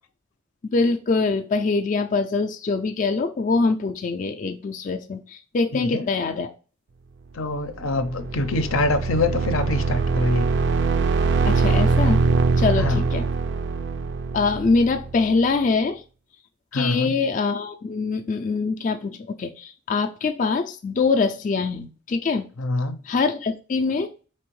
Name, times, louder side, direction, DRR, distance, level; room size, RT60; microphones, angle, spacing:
voice 1, 0.7-6.5 11.5-12.2 12.6-13.3 14.3-16.0 16.7-22.5 23.1-24.1, left 4 dB, 40° left, 0.3 m, -24 dB
voice 2, 5.7-6.0 7.3-10.4 12.8-13.0 16.7-17.2 22.6-23.0, left 2 dB, 90° left, 0.6 m, -25 dB
sound 1, 7.7-15.4, right 4 dB, 55° right, 0.3 m, -23 dB
4.4 x 3.4 x 3.1 m
head